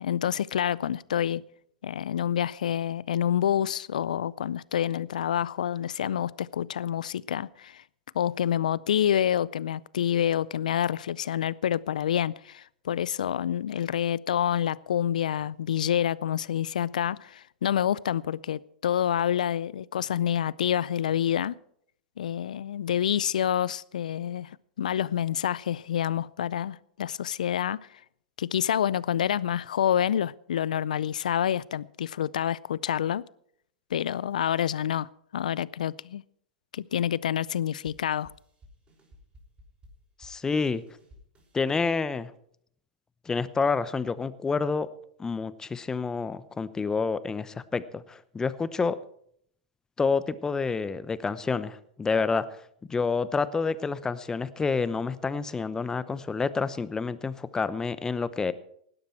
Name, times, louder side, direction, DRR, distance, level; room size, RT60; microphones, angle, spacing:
voice 1, 0.0-1.4 1.8-7.8 8.1-21.6 22.2-27.9 28.4-33.2 33.9-36.2 36.7-38.3, left 10 dB, 75° left, 0.5 m, -28 dB
sound 1, 37.8-41.7, left 1 dB, 25° right, 5.7 m, -56 dB
voice 2, 40.2-40.8 41.5-42.3 43.3-44.9 45.2-49.0 50.0-52.5 52.9-58.5, left 4 dB, 15° left, 0.8 m, -28 dB
17.5 x 12.0 x 4.5 m
hypercardioid pair, 100°, 4 cm